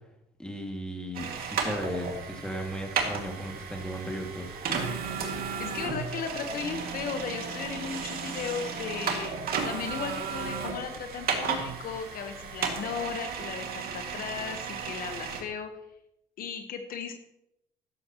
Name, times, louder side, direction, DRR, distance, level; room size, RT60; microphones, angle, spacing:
voice 1, 0.4-4.5, equal, 5° left, 2 dB, 2.2 m, -36 dB
sound 1, 1.1-15.4, right 5 dB, 65° right, 2.2 m, -34 dB
voice 2, 5.6-9.3 9.6-15.7 16.4-17.1, left 6 dB, 60° left, 6 dB, 1.2 m, -36 dB
14.0 x 11.5 x 3.1 m, 0.81 s
cardioid pair, 110°, 17 cm